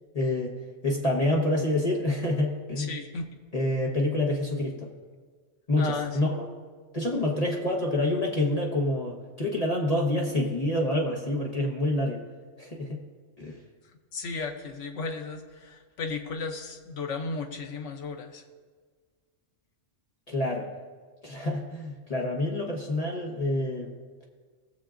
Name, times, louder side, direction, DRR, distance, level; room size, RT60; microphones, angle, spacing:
voice 1, 0.1-0.6 0.8-2.9 3.5-4.9 5.7-6.5 6.9-12.2 12.6-13.0 13.4-13.6 20.3-20.7 21.2-23.9, left 1 dB, 30° left, -1 dB, 1.1 m, -27 dB
voice 2, 2.8-3.3 5.8-6.3 14.1-18.4, left 4 dB, 80° left, 4 dB, 1.2 m, -34 dB
20.0 x 7.5 x 2.5 m, 1.5 s
omnidirectional pair, 1.3 m